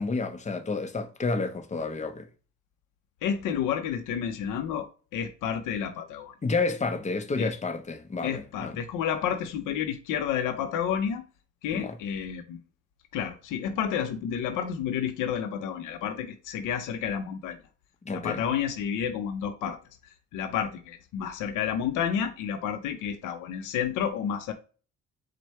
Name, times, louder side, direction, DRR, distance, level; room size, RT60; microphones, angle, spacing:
voice 1, 0.0-2.3 6.4-8.8 11.7-12.0 18.0-18.5, left 3 dB, 25° left, 0.7 m, -30 dB
voice 2, 3.2-6.3 7.4-7.5 8.2-11.2 11.6-12.6 13.1-17.6 18.1-19.8 20.3-24.5, left 8 dB, 90° left, 0.6 m, -30 dB
4.6 x 2.2 x 4.2 m
cardioid pair, 90°, 30 cm